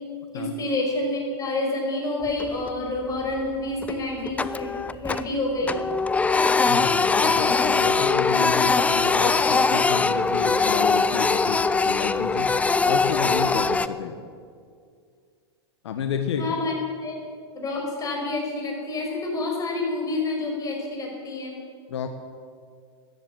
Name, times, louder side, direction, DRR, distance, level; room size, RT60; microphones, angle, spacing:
voice 1, 0.3-5.8 16.4-16.8 17.0-17.2 17.5-21.6, left 2 dB, 25° left, -1 dB, 5.5 m, -28 dB
Printer, 2.3-2.9 3.2-3.4 3.8-5.4 5.6-13.9, left 4 dB, 10° left, 0.5 m, -22 dB
voice 2, 6.7-12.6 12.9-14.2 15.8-16.6 21.9-22.1, left 6 dB, 80° left, 6 dB, 1.4 m, -30 dB
14.0 x 10.5 x 9.2 m, 2.2 s
hypercardioid pair, 115°, 14 cm